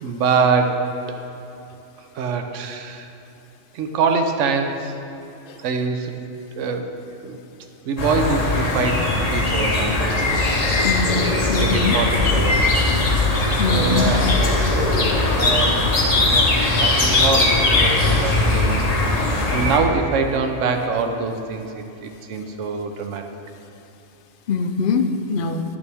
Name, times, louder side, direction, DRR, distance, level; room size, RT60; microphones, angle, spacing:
voice 1, 0.0-0.8 2.1-3.1 3.7-4.9 5.6-6.2 6.5-6.9 7.2-7.4 7.8-9.1 9.3-10.4 11.5-12.6 13.7-15.0 15.3-18.9 19.5-23.2, right 4 dB, 75° right, 5 dB, 1.0 m, -24 dB
sound 1, 8.0-19.8, left 2 dB, 35° left, 0.9 m, -19 dB
voice 2, 10.8-11.2 11.5-12.0 13.6-14.1 24.5-25.6, left 5 dB, 60° left, 6 dB, 0.6 m, -22 dB
10.0 x 7.1 x 3.4 m, 3.0 s
omnidirectional pair, 1.3 m